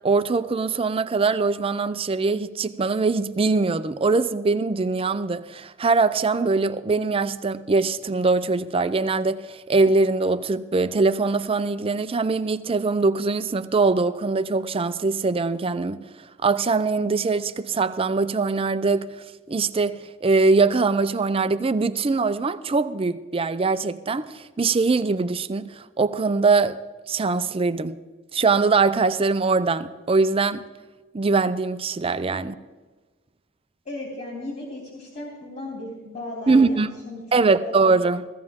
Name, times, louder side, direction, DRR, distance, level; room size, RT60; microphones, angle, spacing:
voice 1, 0.0-19.2 19.5-26.8 27.1-28.0 28.3-30.6 31.1-32.5 36.5-36.9 37.3-38.3, right 3 dB, 30° right, 0.5 m, -22 dB
voice 2, 33.8-37.2 37.5-37.7, left 2 dB, 40° left, 3.3 m, -36 dB
17.0 x 15.0 x 3.6 m
head